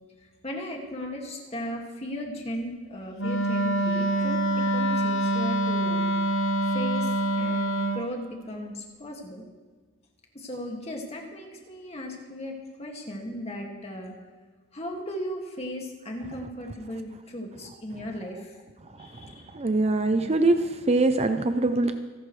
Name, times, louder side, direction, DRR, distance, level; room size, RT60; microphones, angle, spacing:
voice 1, 0.4-6.0 6.6-9.4 10.3-14.2 14.7-18.6 19.0-19.5, equal, 30° left, 0 dB, 2.2 m, -36 dB
Wind instrument woodwind instrument, 3.2-8.1, right 1 dB, 60° left, 1.2 m, -25 dB
voice 2, 19.5-22.0, right 2 dB, 30° right, 8 dB, 0.6 m, -23 dB
28.0 x 11.0 x 3.3 m, 1.4 s
head